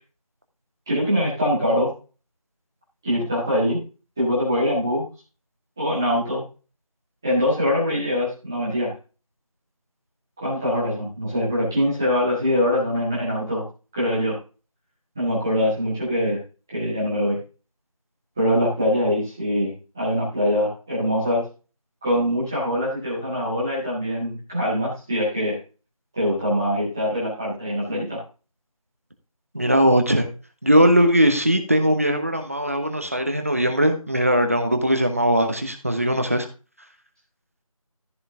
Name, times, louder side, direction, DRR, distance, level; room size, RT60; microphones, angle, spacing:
voice 1, 0.9-1.9 3.0-3.8 4.2-5.0 5.8-6.4 7.2-8.9 10.4-13.7 13.9-14.4 15.1-16.4 16.7-17.4 18.4-21.4 22.0-25.6 26.1-28.2, equal, 5° right, -8 dB, 1.6 m, -23 dB
voice 2, 29.5-30.3 30.6-36.5, equal, 25° right, 6 dB, 1.0 m, -20 dB
14.5 x 5.3 x 3.8 m, 0.34 s
figure-of-eight pair, 175°, 19 cm